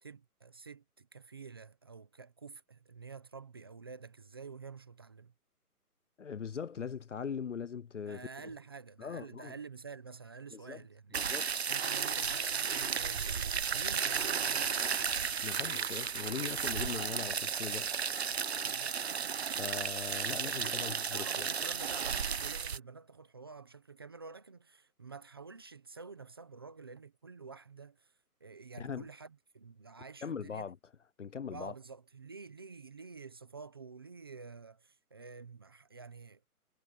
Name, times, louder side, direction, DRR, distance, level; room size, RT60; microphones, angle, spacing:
voice 1, 0.0-5.3 8.1-11.3 11.7-14.8 18.6-19.0 21.1-28.1 28.4-30.7 31.5-36.4, right 4 dB, 15° right, 0.9 m, -49 dB
voice 2, 6.2-8.3 9.0-9.5 10.5-10.8 11.1-11.4 15.4-18.0 19.6-21.5 28.8-29.1 30.2-30.8 31.2-31.7, left 6 dB, 50° left, 0.9 m, -40 dB
sound 1, 11.1-22.8, right 6 dB, 45° right, 1.1 m, -34 dB
sound 2, 11.7-16.9, left 7 dB, 25° left, 1.4 m, -56 dB
hypercardioid pair, 170°, 46 cm